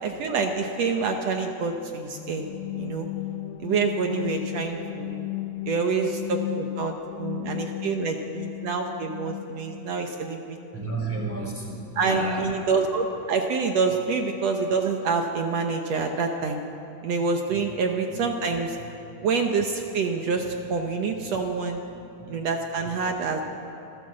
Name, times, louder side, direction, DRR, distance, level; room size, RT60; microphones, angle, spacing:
voice 1, 0.0-2.4 2.8-3.1 3.6-5.2 5.7-10.8 11.9-16.6 17.0-18.8 19.2-21.8 22.3-23.4, right 4 dB, 70° right, 4 dB, 1.6 m, -27 dB
sound 1, 2.1-9.9, left 18 dB, 85° left, 2.4 m, -35 dB
voice 2, 10.7-12.4 21.2-21.3 22.2-22.3, right 1 dB, 5° right, -3 dB, 4.3 m, -31 dB
26.0 x 13.5 x 7.7 m, 3.0 s
omnidirectional pair, 4.2 m